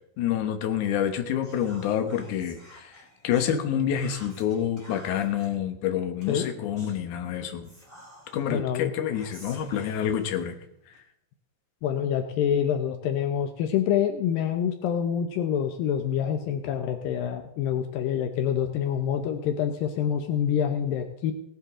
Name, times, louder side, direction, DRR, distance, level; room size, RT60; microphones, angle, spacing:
voice 1, 0.2-7.7 8.3-10.5, left 9 dB, 70° left, 7 dB, 1.9 m, -28 dB
Whispering, 1.4-3.6 4.0-5.5 6.2-7.0 7.6-8.5 9.1-11.0, left 1 dB, 10° left, 3.5 m, -50 dB
voice 2, 8.5-8.9 11.8-21.3, left 9 dB, 85° left, 6 dB, 1.9 m, -26 dB
18.0 x 10.0 x 3.7 m, 0.76 s
omnidirectional pair, 5.2 m